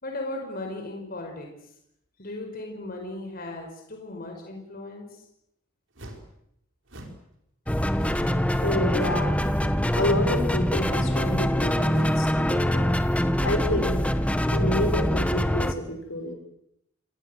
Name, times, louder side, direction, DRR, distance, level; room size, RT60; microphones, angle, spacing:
voice 1, 0.0-1.5 2.2-5.2, left 2 dB, 45° left, 3 dB, 5.0 m, -36 dB
sound 1, 6.0-6.3 6.9-7.2 7.9-8.4 8.9-9.3 9.9-10.3 10.9-11.2 11.9-12.2, right 1 dB, 65° right, 4.9 m, -44 dB
sound 2, 7.7-15.7, equal, 5° left, 1.2 m, -24 dB
voice 2, 8.6-14.0 14.5-16.3, left 1 dB, 80° left, 5 dB, 6.5 m, -29 dB
27.0 x 22.0 x 7.9 m, 0.77 s
head